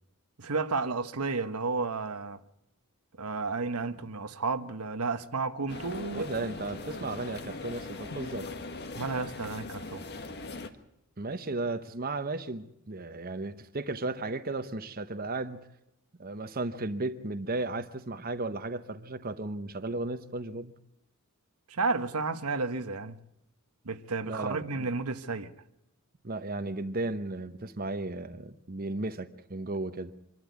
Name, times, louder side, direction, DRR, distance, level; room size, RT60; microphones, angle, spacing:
voice 1, 0.4-2.4 3.2-6.3 9.0-10.0 21.7-23.2 23.8-25.5, right 3 dB, 85° right, 1.2 m, -32 dB
sound 1, 5.7-10.7, left 3 dB, 50° left, 1.6 m, -40 dB
voice 2, 6.1-8.5 11.2-15.7 16.2-20.7 24.2-24.9 26.2-30.1, right 2 dB, 40° right, 1.0 m, -35 dB
26.0 x 12.0 x 9.4 m
head